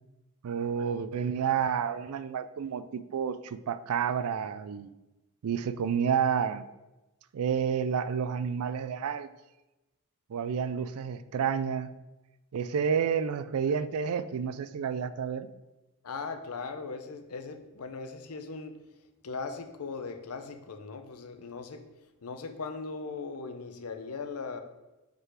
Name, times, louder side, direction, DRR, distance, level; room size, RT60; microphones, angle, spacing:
voice 1, 0.4-4.9 5.4-6.7 7.3-9.3 10.3-11.9 12.5-15.5, right 7 dB, 80° right, 13 dB, 0.4 m, -30 dB
voice 2, 16.0-18.8 19.2-21.8 22.2-24.6, left 4 dB, 85° left, 7 dB, 0.7 m, -39 dB
5.4 x 3.9 x 4.8 m, 1.0 s
head